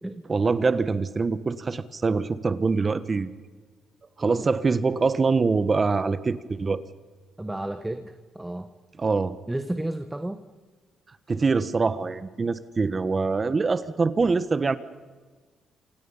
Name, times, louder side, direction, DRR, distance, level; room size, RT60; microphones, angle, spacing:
voice 1, 0.3-3.3 4.2-6.8 9.0-9.4 11.3-14.8, right 4 dB, 30° right, 14 dB, 1.4 m, -24 dB
voice 2, 7.4-8.7 9.5-10.4, right 1 dB, 10° right, 9 dB, 1.4 m, -32 dB
28.5 x 27.0 x 5.7 m, 1.4 s
cardioid pair, 90°, 0 cm